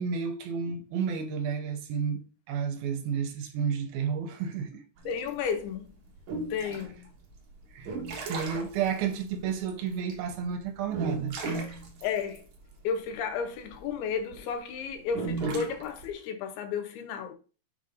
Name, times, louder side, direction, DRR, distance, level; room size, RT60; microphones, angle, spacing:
voice 1, 0.0-2.2 2.5-4.8 7.7-8.0 8.3-11.3, right 7 dB, 80° right, 2.7 m, -31 dB
sound 1, 5.0-14.4 15.0-16.1, right 3 dB, 60° right, 2.2 m, -36 dB
voice 2, 5.1-5.9 6.5-7.1 12.0-12.5 12.8-17.3, left 6 dB, 90° left, 2.8 m, -33 dB
7.0 x 5.6 x 2.6 m
omnidirectional pair, 4.4 m